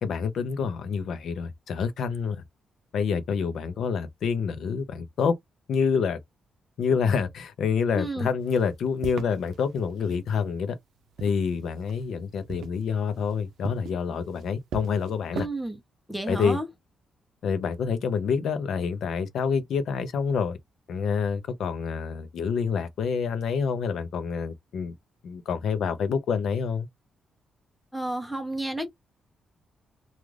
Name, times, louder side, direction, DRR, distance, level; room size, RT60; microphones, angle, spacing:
voice 1, 0.0-2.4 2.9-5.3 5.7-6.2 6.8-10.8 11.2-15.5 16.3-16.6 17.4-20.6 20.9-24.9 25.2-26.9, left 6 dB, 60° left, 0.6 m, -27 dB
voice 2, 7.9-8.3 15.3-15.8 16.1-16.7 27.9-28.9, right 1 dB, ahead, 0.7 m, -31 dB
sound 1, 8.4-10.3 10.9-12.2 12.5-15.5, right 7 dB, 65° right, 0.5 m, -40 dB
2.4 x 2.4 x 3.1 m
wide cardioid pair, 175°, 0 cm